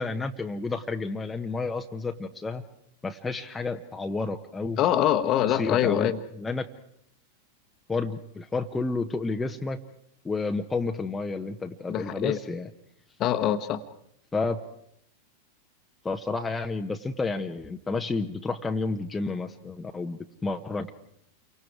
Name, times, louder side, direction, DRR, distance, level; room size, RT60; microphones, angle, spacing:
voice 1, 0.0-2.6 3.0-4.8 5.5-6.1 6.4-6.7 7.9-9.8 10.2-12.7 14.3-14.6 16.0-20.9, left 3 dB, 10° left, 4 dB, 1.1 m, -30 dB
voice 2, 4.8-6.2 11.9-12.4 13.2-13.8, left 11 dB, 35° left, 10 dB, 1.3 m, -24 dB
29.5 x 24.5 x 4.8 m, 0.73 s
figure-of-eight pair, 90°, 0 cm